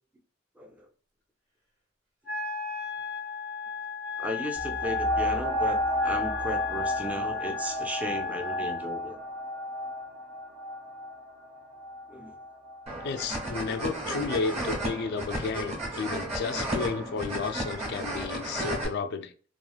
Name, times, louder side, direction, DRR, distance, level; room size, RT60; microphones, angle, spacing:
voice 1, 0.6-0.9 4.2-9.2 12.1-12.4, equal, 10° right, 0.4 m, -35 dB
Wind instrument woodwind instrument, 2.2-8.8, left 5 dB, 75° right, 1.2 m, -36 dB
sound 1, 4.6-13.8 14.4-14.5, left 1 dB, 55° right, 0.9 m, -32 dB
sound 2, 12.9-18.8, right 1 dB, 30° right, 1.1 m, -33 dB
voice 2, 13.0-19.3, left 5 dB, 60° left, 0.3 m, -32 dB
3.1 x 2.4 x 2.3 m
head